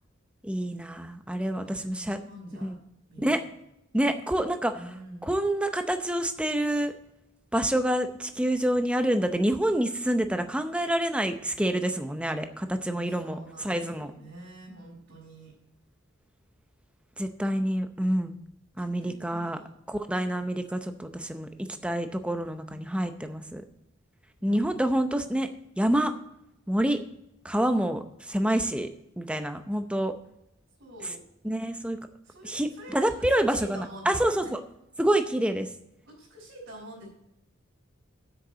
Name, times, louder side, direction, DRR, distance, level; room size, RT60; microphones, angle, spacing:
voice 1, 0.4-2.2 2.6-2.8 3.2-3.4 3.9-4.8 5.2-6.9 7.5-14.1 17.2-18.4 18.8-19.6 19.9-21.5 21.8-23.6 24.4-25.5 25.8-26.1 26.7-27.0 27.4-28.9 29.2-30.1 31.4-32.0 32.4-34.6 35.0-35.7, right 1 dB, 5° right, 8 dB, 0.6 m, -27 dB
voice 2, 1.6-2.7 3.1-3.4 4.7-5.3 12.9-15.5 18.8-19.7 22.5-23.3 24.4-24.6 30.8-31.2 32.2-34.5 36.0-37.1, right 1 dB, 65° right, -9 dB, 4.6 m, -46 dB
7.9 x 6.5 x 7.9 m, 0.82 s
head